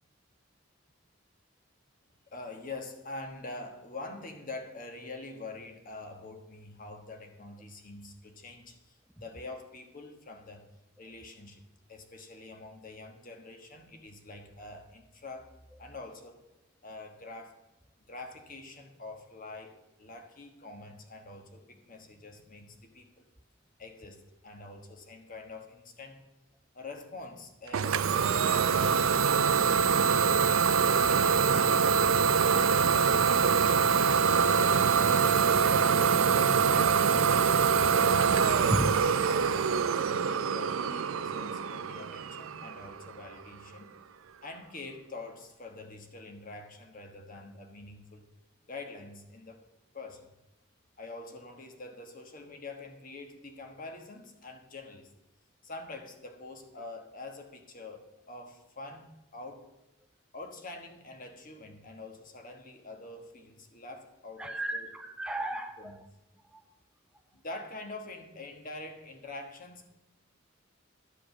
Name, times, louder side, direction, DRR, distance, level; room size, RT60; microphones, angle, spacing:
voice 1, 2.3-10.6 11.0-11.6 11.9-15.5 15.8-16.4 16.8-17.6 18.1-23.3 23.8-26.2 26.7-30.0 31.0-36.1 36.6-37.0 38.0-39.6 40.0-43.9 44.4-48.3 48.7-49.7 49.9-50.3 51.0-55.1 55.6-59.7 60.3-64.9 65.8-65.9 67.3-69.9, left 2 dB, 45° left, 5 dB, 1.3 m, -45 dB
Idling / Domestic sounds home sounds, 27.7-43.3, right 6 dB, 85° right, 0.5 m, -24 dB
voice 2, 64.4-66.1 66.5-66.6, right 1 dB, 5° right, 6 dB, 0.3 m, -33 dB
11.5 x 5.0 x 7.0 m, 0.96 s
head